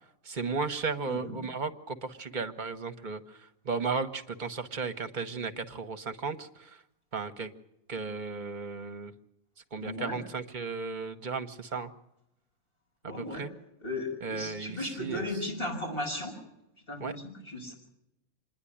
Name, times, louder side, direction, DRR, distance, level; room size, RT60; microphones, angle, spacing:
voice 1, 0.2-3.4 3.6-6.8 7.1-7.5 7.9-9.1 9.7-11.9 13.2-13.5 14.2-15.3 17.0-17.1, right 4 dB, 45° right, 7 dB, 1.1 m, -35 dB
voice 2, 1.1-1.4 9.8-10.2 13.0-13.4 13.8-16.4 16.9-17.7, left 1 dB, 50° left, -1 dB, 6.4 m, -36 dB
26.0 x 10.5 x 10.0 m, 0.84 s
omnidirectional pair, 1.2 m